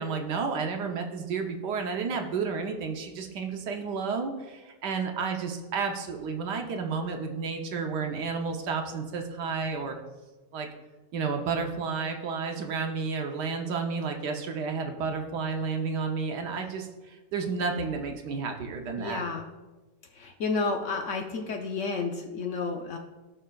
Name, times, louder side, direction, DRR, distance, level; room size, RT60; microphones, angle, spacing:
voice 1, 0.0-10.0 10.5-10.7 11.1-19.2, right 5 dB, 70° right, 4 dB, 1.3 m, -31 dB
voice 2, 19.0-19.5 20.2-23.0, left 4 dB, 70° left, 3 dB, 0.7 m, -31 dB
16.0 x 5.6 x 2.3 m, 1.2 s
omnidirectional pair, 2.0 m